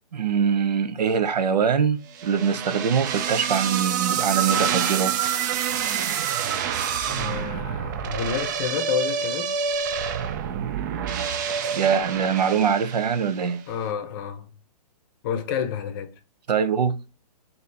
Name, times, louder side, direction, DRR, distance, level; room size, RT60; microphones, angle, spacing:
voice 1, 0.1-5.2 11.7-13.6 16.5-17.0, right 7 dB, 85° right, 0.6 m, -23 dB
sound 1, 2.2-13.4, right 8 dB, 30° right, 0.4 m, -27 dB
voice 2, 7.1-9.5 13.7-14.5 15.2-16.1, left 8 dB, 35° left, 0.7 m, -29 dB
4.2 x 2.7 x 3.3 m
hypercardioid pair, 140°, 21 cm